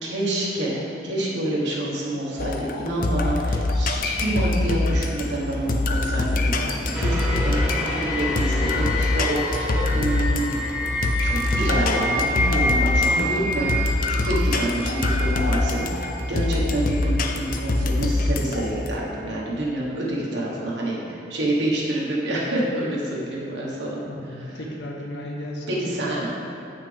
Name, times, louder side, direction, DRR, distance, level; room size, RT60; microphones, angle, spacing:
voice 1, 0.0-10.7 11.2-24.0 24.4-24.6 25.7-26.3, right 1 dB, 85° right, -5 dB, 1.4 m, -27 dB
sound 1, 2.4-18.9, left 2 dB, 50° left, 0.4 m, -24 dB
sound 2, 6.9-18.0 18.6-18.7, left 1 dB, 5° right, 0.7 m, -28 dB
voice 2, 24.0-26.2, left 1 dB, 80° left, -1 dB, 1.0 m, -35 dB
8.2 x 5.8 x 3.4 m, 3.0 s
head